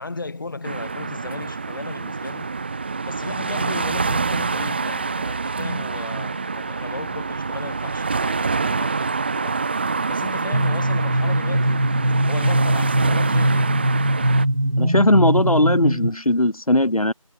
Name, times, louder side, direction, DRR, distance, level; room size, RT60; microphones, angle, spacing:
voice 1, 0.0-2.5 3.1-9.6 10.1-11.9 12.3-13.8, left 3 dB, 35° left, 5.7 m, -35 dB
sound 1, 0.6-14.5, right 4 dB, 20° right, 1.6 m, -26 dB
sound 2, 10.5-16.1, right 1 dB, 85° right, 4.1 m, -21 dB
voice 2, 14.8-17.1, left 1 dB, 80° left, 2.8 m, -18 dB
figure-of-eight pair, 170°, 18 cm